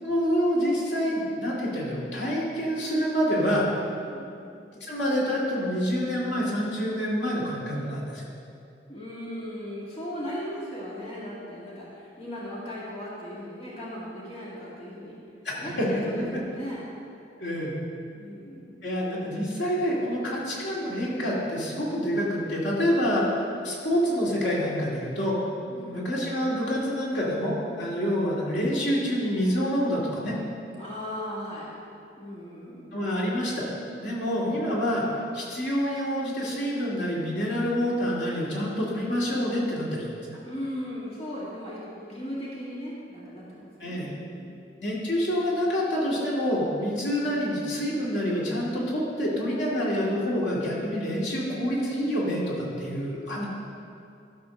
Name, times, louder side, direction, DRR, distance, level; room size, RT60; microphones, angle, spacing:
voice 1, 0.0-3.7 4.8-8.3 15.4-15.9 17.4-17.7 18.8-25.4 25.9-30.3 32.9-33.6 34.0-35.1 35.3-40.1 43.8-44.1 44.8-53.4, equal, 80° left, -5 dB, 2.4 m, -27 dB
voice 2, 3.9-4.5 8.9-15.2 15.6-16.9 18.1-18.9 25.7-26.2 30.8-31.7 32.2-33.1 40.5-44.7, equal, 35° left, -8 dB, 1.9 m, -38 dB
13.0 x 4.3 x 6.6 m, 2.5 s
head